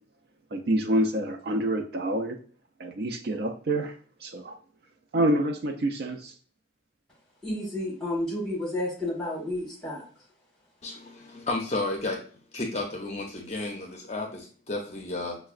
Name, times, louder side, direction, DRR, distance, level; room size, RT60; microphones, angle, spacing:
voice 1, 0.5-2.4 2.8-4.6 5.1-6.3, right 1 dB, 55° right, 0.4 m, -27 dB
voice 2, 7.4-10.0, left 1 dB, 5° left, 1.5 m, -31 dB
voice 3, 10.8-12.2 12.5-15.4, left 2 dB, 35° left, 0.5 m, -32 dB
5.7 x 2.1 x 2.4 m
head